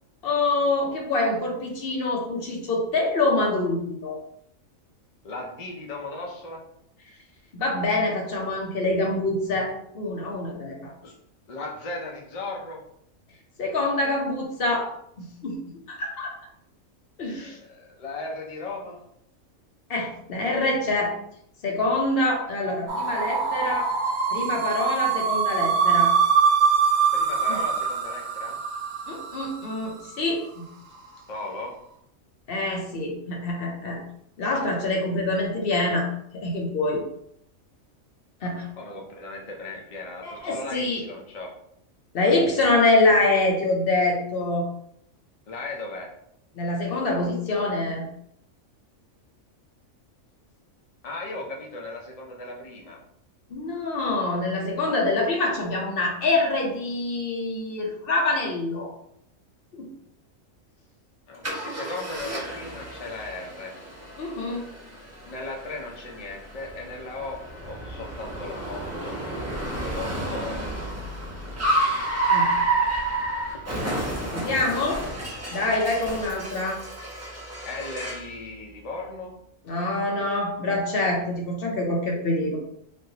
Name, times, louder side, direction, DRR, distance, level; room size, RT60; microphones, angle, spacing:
voice 1, 0.2-4.2 7.5-10.9 13.6-14.9 15.2-15.6 15.9-16.3 17.2-17.5 19.9-21.1 21.6-23.9 24.3-26.1 27.5-27.6 29.1-30.7 32.5-34.0 34.4-36.1 36.3-37.0 38.4-38.7 40.2-41.0 42.1-44.7 46.5-48.1 53.5-58.9 59.7-59.9 64.2-64.6 72.3-72.5 74.3-75.0 75.5-76.8 79.7-82.6, left 2 dB, 50° left, -1 dB, 0.9 m, -25 dB
voice 2, 5.2-6.6 11.0-11.1 11.5-12.8 17.4-19.0 27.1-28.6 31.3-31.8 38.8-41.6 45.5-46.2 51.0-53.0 61.3-63.8 65.2-69.2 69.9-71.0 77.7-79.4, left 2 dB, 75° left, 0 dB, 0.3 m, -37 dB
sound 1, 22.9-29.9, right 6 dB, 85° right, 1.0 m, -23 dB
Car, 61.4-78.3, right 2 dB, 25° right, 0.3 m, -30 dB
3.2 x 2.6 x 2.8 m, 0.71 s
omnidirectional pair, 1.4 m